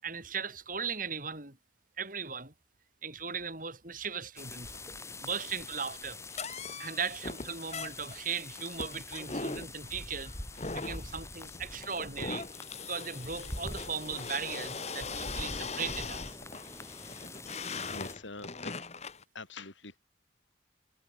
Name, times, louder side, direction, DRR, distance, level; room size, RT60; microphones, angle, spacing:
voice 1, 0.0-1.6 2.0-2.5 3.0-4.8 5.2-6.2 6.8-10.3 10.7-12.5 12.8-16.4, right 6 dB, 45° right, 5.9 m, -38 dB
sound 1, 4.4-18.2, left 2 dB, 15° left, 6.2 m, -45 dB
sound 2, 6.3-19.2, left 4 dB, 35° left, 2.0 m, -40 dB
voice 2, 17.9-18.7 19.3-20.0, left 3 dB, 85° left, 4.3 m, -45 dB
head